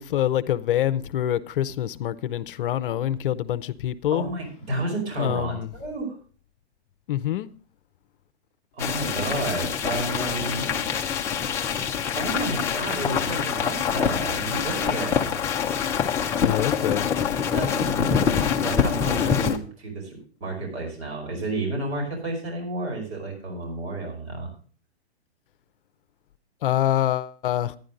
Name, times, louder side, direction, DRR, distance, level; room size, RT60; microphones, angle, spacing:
voice 1, 0.0-4.3 5.2-5.7 7.1-7.5 10.6-10.7 16.4-17.1 26.6-27.8, left 12 dB, 50° left, 0.7 m, -25 dB
voice 2, 4.1-6.2 8.7-10.8 12.1-15.3 17.5-18.3 18.6-24.5, right 2 dB, 70° right, 5.6 m, -31 dB
sound 1, 8.8-19.6, left 7 dB, 10° left, 0.4 m, -25 dB
11.5 x 10.5 x 3.8 m
hypercardioid pair, 140°, 34 cm